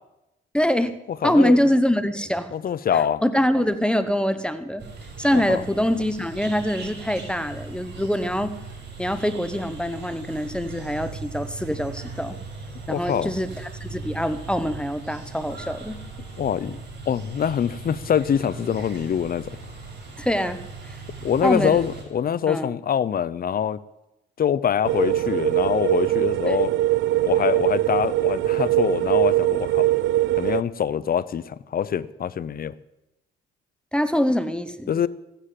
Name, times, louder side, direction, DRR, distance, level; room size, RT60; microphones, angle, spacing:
voice 1, 0.5-0.9 1.2-2.5 2.9-4.8 5.2-8.5 9.0-12.4 12.9-13.5 13.8-16.0 20.2-20.6 20.9-21.0 21.4-21.8 22.5-22.7 26.5-26.6 33.9-34.9, equal, 5° left, 11 dB, 1.0 m, -24 dB
voice 2, 1.2-1.6 2.5-3.2 5.3-5.6 12.9-13.3 16.4-19.5 21.2-23.8 24.4-26.7 27.2-29.9 30.4-32.7 34.9-35.1, left 8 dB, 50° left, 18 dB, 0.7 m, -24 dB
sound 1, 4.8-22.0, right 3 dB, 60° right, 5.3 m, -39 dB
sound 2, 24.9-30.6, right 15 dB, 75° right, 0.4 m, -22 dB
15.0 x 10.0 x 7.7 m, 0.92 s
cardioid pair, 90°, 20 cm